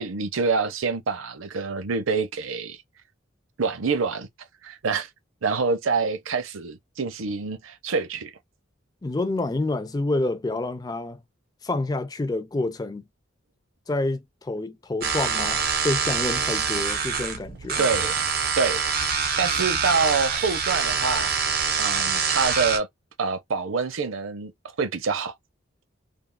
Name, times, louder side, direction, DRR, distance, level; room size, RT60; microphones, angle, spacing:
voice 1, 0.0-2.8 3.6-4.3 4.6-5.1 5.4-8.3 17.8-18.2 18.6-18.8 19.4-21.3 21.8-22.9 23.2-24.5 24.8-25.3, right 4 dB, 85° right, 0.6 m, -26 dB
voice 2, 9.0-11.2 11.6-13.0 13.9-17.9, left 2 dB, 20° left, 0.3 m, -28 dB
sound 1, 15.0-22.8, right 6 dB, 50° right, 0.8 m, -25 dB
3.4 x 2.3 x 2.2 m
head